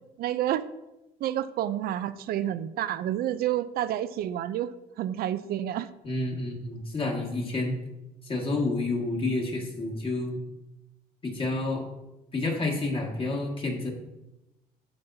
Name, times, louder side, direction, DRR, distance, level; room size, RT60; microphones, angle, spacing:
voice 1, 0.2-0.6 1.2-4.7 5.0-5.9, right 12 dB, 65° right, 13 dB, 0.4 m, -29 dB
voice 2, 6.0-7.8 8.2-10.4 11.2-11.9 12.3-13.9, left 2 dB, 30° left, 0 dB, 1.8 m, -29 dB
12.5 x 5.2 x 2.7 m, 0.96 s
cardioid pair, 110°, 17 cm